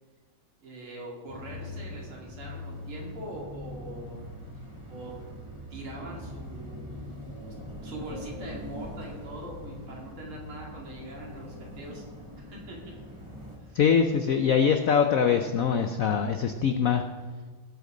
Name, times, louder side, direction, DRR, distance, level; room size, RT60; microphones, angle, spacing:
voice 1, 0.6-4.2 4.9-5.1 5.7-6.9 7.8-12.0 12.4-12.8 13.6-13.8, right 1 dB, 75° right, -3 dB, 3.4 m, -42 dB
sound 1, 1.3-13.6, left 1 dB, 15° right, 2.1 m, -42 dB
voice 2, 13.7-17.0, left 7 dB, 85° left, 6 dB, 0.7 m, -23 dB
17.5 x 8.3 x 3.9 m, 1.5 s
omnidirectional pair, 2.3 m